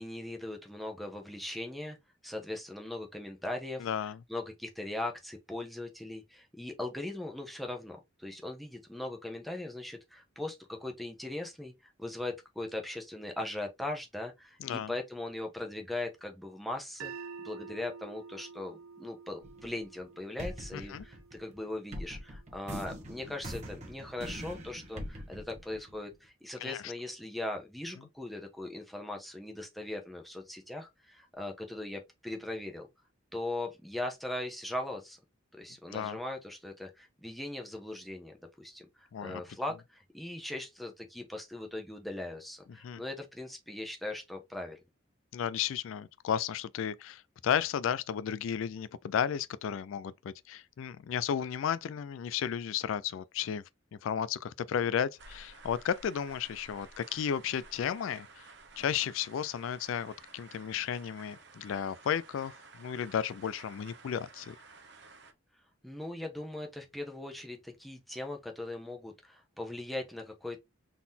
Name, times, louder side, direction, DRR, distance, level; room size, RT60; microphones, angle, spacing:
voice 1, 0.0-2.0 2.2-3.9 4.3-32.9 33.3-35.2 35.5-44.8 65.8-70.6, left 1 dB, ahead, 1.0 m, -39 dB
voice 2, 3.8-4.2 14.6-14.9 20.7-21.0 26.6-26.9 35.9-36.2 39.1-39.4 42.8-43.0 45.3-53.6 54.0-58.4 58.8-62.5 62.8-64.6, left 8 dB, 75° left, 0.3 m, -33 dB
sound 1, 17.0-23.2, right 5 dB, 85° right, 0.5 m, -49 dB
sound 2, 19.4-20.0 20.4-26.3, equal, 35° right, 1.2 m, -43 dB
sound 3, 55.2-65.3, right 3 dB, 55° right, 1.0 m, -54 dB
4.0 x 3.7 x 2.7 m
head